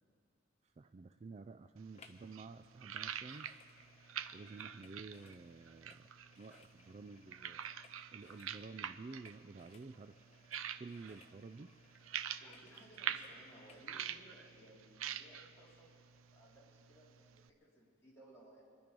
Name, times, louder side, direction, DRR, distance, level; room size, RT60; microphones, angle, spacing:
voice 1, 0.8-3.5 4.3-6.1 6.4-7.6 8.1-10.2 10.8-11.7, right 4 dB, 30° right, 9 dB, 0.3 m, -51 dB
sound 1, 1.8-17.5, right 9 dB, 90° right, 0.5 m, -47 dB
sound 2, 1.9-2.3 2.6-13.9 14.4-14.5, left 4 dB, 30° left, 0.9 m, -66 dB
voice 2, 12.4-16.0 16.3-18.6, right 1 dB, 15° left, -7 dB, 3.9 m, -61 dB
25.5 x 10.5 x 5.3 m, 2.3 s
head